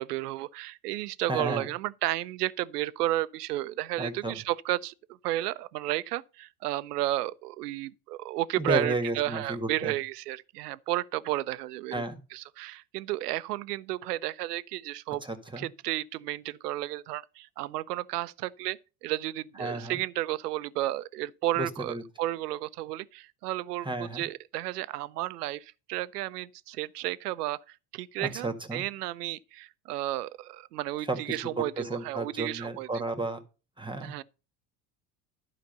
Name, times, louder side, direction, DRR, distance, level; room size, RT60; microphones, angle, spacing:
voice 1, 0.0-12.0 12.3-15.2 15.6-33.0 34.0-34.2, right 16 dB, 85° right, 0.7 m, -33 dB
voice 2, 1.3-1.7 4.0-4.4 8.6-9.9 11.9-12.2 15.2-15.7 19.6-20.0 21.6-22.0 23.8-24.2 28.2-28.8 31.0-33.4 33.8-34.2, right 2 dB, 10° right, 1.9 m, -33 dB
11.5 x 5.0 x 6.7 m
hypercardioid pair, 70°, 46 cm